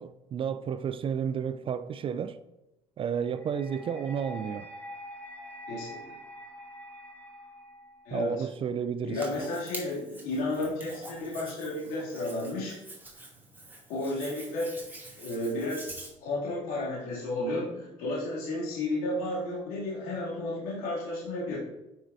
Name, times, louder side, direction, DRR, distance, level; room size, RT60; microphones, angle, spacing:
voice 1, 0.0-2.4 3.0-4.7 8.1-9.2, right 7 dB, 35° right, 0.4 m, -32 dB
sound 1, 3.3-8.3, equal, 10° left, 1.2 m, -45 dB
voice 2, 5.7-6.2 8.1-8.5 9.0-12.8 13.9-14.7 15.1-15.8 16.2-21.6, left 2 dB, 60° left, 2.6 m, -32 dB
Hands, 9.2-16.1, right 2 dB, 10° right, 2.5 m, -46 dB
9.2 x 6.2 x 2.6 m
figure-of-eight pair, 55°, 17 cm